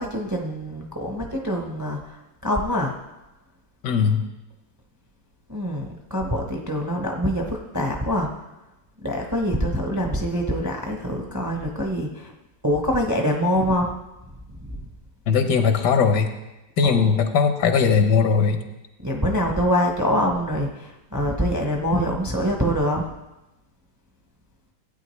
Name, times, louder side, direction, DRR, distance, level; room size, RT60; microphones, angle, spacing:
voice 1, 0.0-3.0 5.5-8.4 9.0-12.3 12.6-13.9 14.3-14.9 16.8-17.1 19.0-23.1, equal, 15° right, 1 dB, 0.6 m, -25 dB
voice 2, 3.8-4.3 15.3-16.3 16.8-18.6, left 6 dB, 75° left, 6 dB, 1.5 m, -19 dB
15.5 x 8.7 x 3.2 m, 0.99 s
omnidirectional pair, 1.9 m